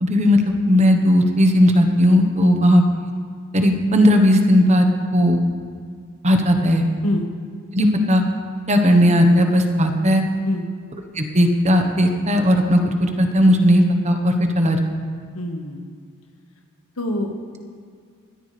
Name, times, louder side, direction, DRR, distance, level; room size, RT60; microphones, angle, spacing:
voice 1, 0.0-2.8 3.5-4.9 5.1-5.4 6.2-6.8 7.7-8.2 8.7-10.2 11.2-12.8 13.2-14.8, equal, 30° right, 5 dB, 1.2 m, -16 dB
voice 2, 15.3-15.8 17.0-17.6, left 1 dB, 80° left, 3 dB, 1.6 m, -26 dB
20.5 x 13.5 x 3.4 m, 2.1 s
head